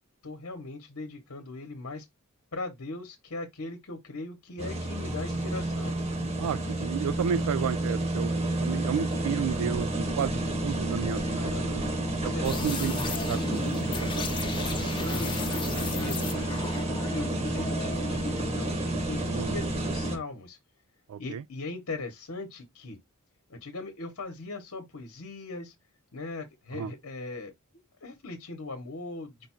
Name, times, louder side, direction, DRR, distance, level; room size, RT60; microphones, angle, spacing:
voice 1, 0.2-2.1 2.5-6.0 11.3-12.9 15.0-16.7 17.1-20.6 21.2-23.0 23.5-25.7 26.1-27.5 28.0-29.5, left 3 dB, 70° left, 1.0 m, -39 dB
sound 1, 4.6-20.2, right 1 dB, 25° right, 1.0 m, -30 dB
voice 2, 6.4-11.8 12.2-13.8 14.2-14.5 19.3-19.6 21.1-21.4 26.7-26.9, right 8 dB, 80° right, 0.3 m, -32 dB
sound 2, 12.4-18.6, left 4 dB, 20° left, 0.6 m, -35 dB
5.1 x 2.3 x 4.3 m
head